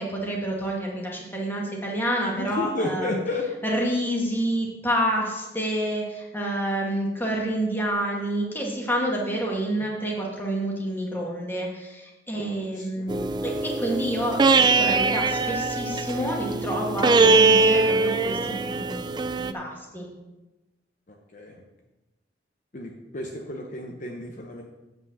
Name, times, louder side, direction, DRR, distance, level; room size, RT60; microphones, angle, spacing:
voice 1, 0.0-3.2 3.6-18.4 18.7-20.1, right 1 dB, 10° left, -2 dB, 1.8 m, -28 dB
voice 2, 2.3-3.5 12.3-13.2 21.1-21.6 22.7-24.6, left 2 dB, 45° left, 1 dB, 0.9 m, -32 dB
sound 1, 13.1-19.5, right 3 dB, 25° right, 0.3 m, -22 dB
8.2 x 5.3 x 7.0 m, 1.1 s
head